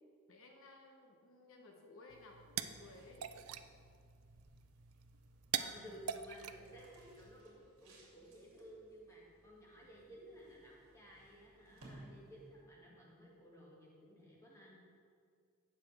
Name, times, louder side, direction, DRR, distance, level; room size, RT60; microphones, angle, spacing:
voice 1, 0.3-3.3, left 2 dB, 65° left, 1 dB, 1.0 m, -58 dB
sound 1, 2.1-7.4, right 9 dB, 80° right, 0.4 m, -45 dB
sound 2, 2.5-12.8, right 1 dB, 65° right, 2.8 m, -63 dB
voice 2, 5.5-14.8, equal, 15° left, -5 dB, 2.1 m, -56 dB
16.5 x 6.6 x 3.4 m, 2.2 s
head